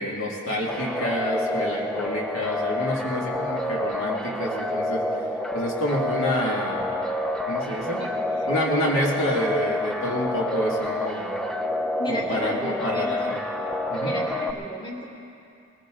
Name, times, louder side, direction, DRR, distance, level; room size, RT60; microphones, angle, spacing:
voice 1, 0.0-5.0 5.5-6.8 7.5-8.0 8.5-11.4 12.1-13.4 13.9-14.1, equal, 60° left, -2 dB, 2.4 m, -28 dB
sound 1, 0.7-14.5, left 1 dB, 5° left, 0.5 m, -28 dB
voice 2, 11.8-13.3 14.0-15.0, left 1 dB, 20° left, -2 dB, 1.9 m, -33 dB
21.0 x 15.0 x 3.9 m, 2.5 s
head